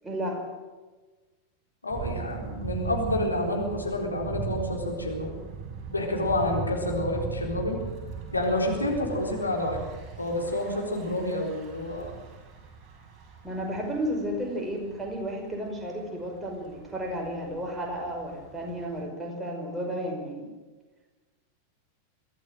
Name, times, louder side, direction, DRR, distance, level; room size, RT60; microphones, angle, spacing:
voice 1, 0.0-0.4 13.4-20.5, equal, 10° right, 1 dB, 5.4 m, -33 dB
voice 2, 1.8-5.3 5.9-7.8 8.3-9.9 10.2-12.1, left 1 dB, 80° left, 0 dB, 4.0 m, -29 dB
Thunder / Bicycle, 1.9-19.0, right 6 dB, 30° right, 5.9 m, -39 dB
23.0 x 14.5 x 7.8 m, 1.3 s
figure-of-eight pair, 90°, 0 cm